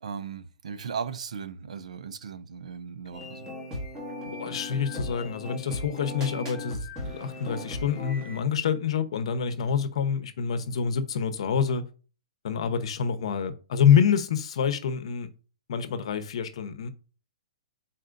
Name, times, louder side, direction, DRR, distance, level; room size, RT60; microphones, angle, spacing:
voice 1, 0.0-3.5, right 6 dB, 85° right, 0.6 m, -37 dB
sound 1, 3.1-8.4, left 1 dB, 15° right, 1.8 m, -37 dB
voice 2, 4.2-11.8 12.4-15.3 15.7-16.9, left 7 dB, 55° left, 0.8 m, -26 dB
9.1 x 4.2 x 2.6 m
hypercardioid pair, 170°, 4 cm